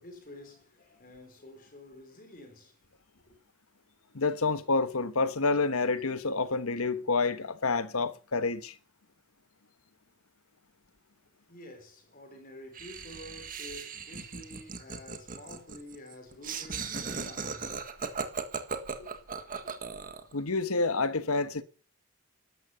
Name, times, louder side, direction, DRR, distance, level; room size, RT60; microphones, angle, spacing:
voice 1, 0.0-2.8 3.3-3.4 11.5-18.4 18.7-20.1, left 1 dB, 40° left, 3.8 m, -50 dB
voice 2, 4.1-8.7 20.3-21.6, left 3 dB, 75° left, 1.2 m, -28 dB
Laughter, 12.7-20.3, right 5 dB, 40° right, 1.7 m, -37 dB
13.0 x 12.0 x 6.9 m
head